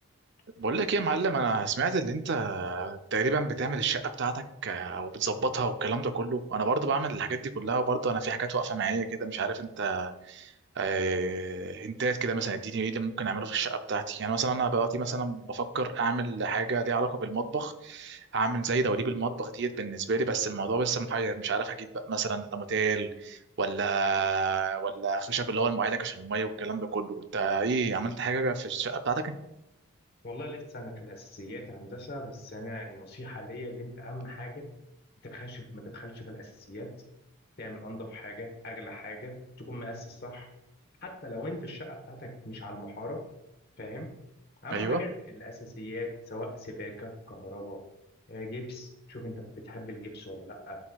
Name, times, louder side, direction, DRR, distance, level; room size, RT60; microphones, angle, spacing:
voice 1, 0.6-29.3 44.7-45.0, right 4 dB, 50° right, 8 dB, 0.5 m, -29 dB
voice 2, 30.2-34.6 35.2-36.9 37.6-40.5 41.0-43.2 43.8-44.1 44.6-47.8 48.3-50.8, left 1 dB, 45° left, 2 dB, 1.2 m, -40 dB
11.0 x 4.3 x 2.3 m, 0.87 s
head